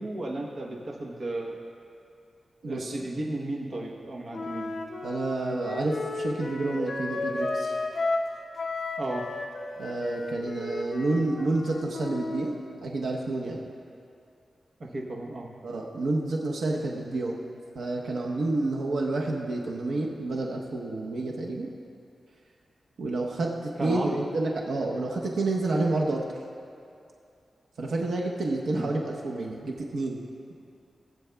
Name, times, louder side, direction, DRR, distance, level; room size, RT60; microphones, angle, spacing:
voice 1, 0.0-1.5 2.6-4.7 9.0-9.2 14.8-15.5 23.8-24.2 28.7-28.9, right 2 dB, 45° right, -2 dB, 1.0 m, -34 dB
voice 2, 2.6-3.0 5.0-7.7 9.8-12.5 12.8-13.6 15.6-17.4 17.7-21.7 23.0-26.2 27.8-30.2, right 2 dB, 90° right, -1 dB, 0.9 m, -29 dB
Wind instrument woodwind instrument, 4.3-8.3 8.6-12.5, left 2 dB, 50° left, 0.8 m, -33 dB
18.0 x 8.3 x 2.3 m, 2.5 s
wide cardioid pair, 165°, 0 cm